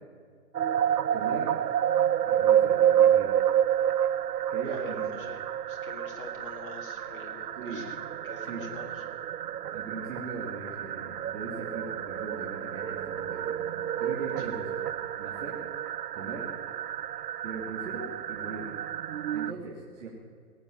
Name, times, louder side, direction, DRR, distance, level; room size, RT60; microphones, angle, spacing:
sound 1, 0.5-19.5, right 10 dB, 85° right, 0.6 m, -29 dB
voice 1, 1.1-1.6 2.2-3.3 4.5-5.1 7.6-7.9 8.4-8.6 9.7-15.6 16.1-16.5 17.4-18.7 19.3-20.1, right 4 dB, 50° right, -3 dB, 2.9 m, -39 dB
voice 2, 4.6-5.4 5.7-8.0 8.2-9.0 14.4-14.5, left 3 dB, 35° left, 1 dB, 2.9 m, -45 dB
18.0 x 8.1 x 9.5 m, 2.1 s
hypercardioid pair, 160°, 45 cm